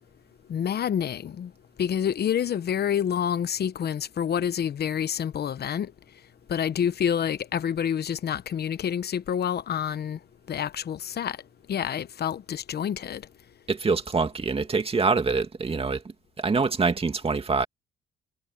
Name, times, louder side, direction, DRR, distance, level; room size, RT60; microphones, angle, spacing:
voice 1, 0.5-1.5 1.8-5.9 6.5-10.2 10.5-11.4 11.7-13.2, left 8 dB, 55° left, 1.1 m, -28 dB
voice 2, 13.7-16.0 16.4-17.7, right 4 dB, 30° right, 2.5 m, -25 dB
cardioid pair, 90°, 20 cm